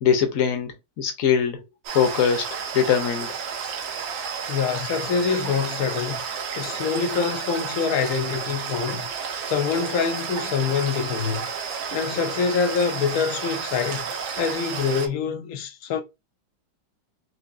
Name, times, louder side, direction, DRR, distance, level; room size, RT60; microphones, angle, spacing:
voice 1, 0.0-1.6 1.9-2.5 2.7-3.3, left 7 dB, 60° left, 0.9 m, -21 dB
sound 1, 1.9-15.1, right 6 dB, 80° right, 1.6 m, -31 dB
voice 2, 4.5-6.2 6.6-9.1 9.5-11.4 11.9-14.1 14.4-16.0, left 6 dB, 85° left, 0.7 m, -25 dB
4.9 x 2.6 x 2.5 m
omnidirectional pair, 2.1 m